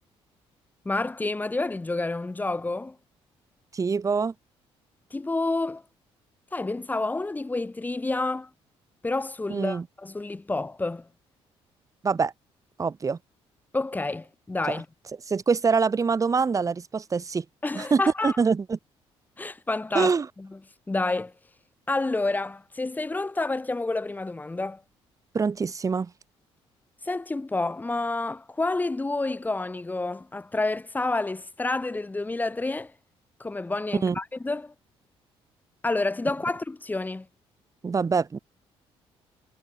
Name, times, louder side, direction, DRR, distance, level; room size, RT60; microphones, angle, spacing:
voice 1, 0.9-3.0 5.1-5.8 6.5-8.5 9.0-11.1 13.7-14.9 17.6-18.4 19.4-20.1 20.4-20.5 20.9-21.3 21.9-24.8 27.0-32.9 33.4-34.7 35.8-37.3, left 2 dB, 15° left, 6.9 m, -29 dB
voice 2, 3.7-4.3 9.5-9.8 12.0-12.3 12.8-13.2 15.3-17.4 17.7-18.8 19.9-20.3 25.3-26.1 34.0-34.2 37.8-38.4, right 5 dB, 30° right, 7.6 m, -24 dB
cardioid pair, 110°, 11 cm